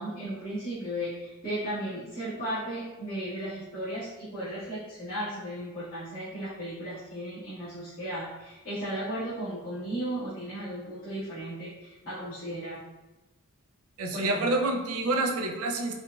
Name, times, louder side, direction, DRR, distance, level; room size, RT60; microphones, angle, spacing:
voice 1, 0.0-12.8 14.1-14.6, right 1 dB, 40° left, -17 dB, 1.5 m, -35 dB
voice 2, 14.0-15.9, right 2 dB, 75° right, 3 dB, 0.5 m, -27 dB
4.5 x 2.5 x 2.3 m, 1.1 s
head